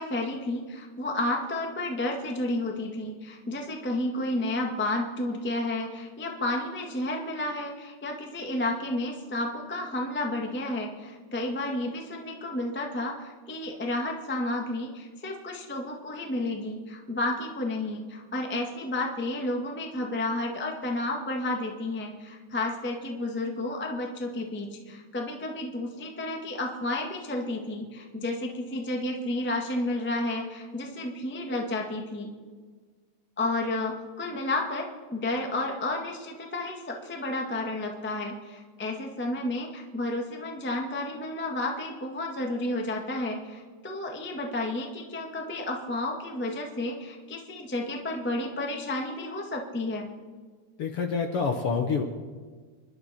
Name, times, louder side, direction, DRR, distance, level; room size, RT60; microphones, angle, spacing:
voice 1, 0.0-32.3 33.4-50.1, left 2 dB, 10° left, 1 dB, 0.7 m, -31 dB
voice 2, 50.8-52.0, left 5 dB, 60° left, 4 dB, 1.6 m, -27 dB
27.0 x 11.5 x 4.4 m, 1.5 s
omnidirectional pair, 3.7 m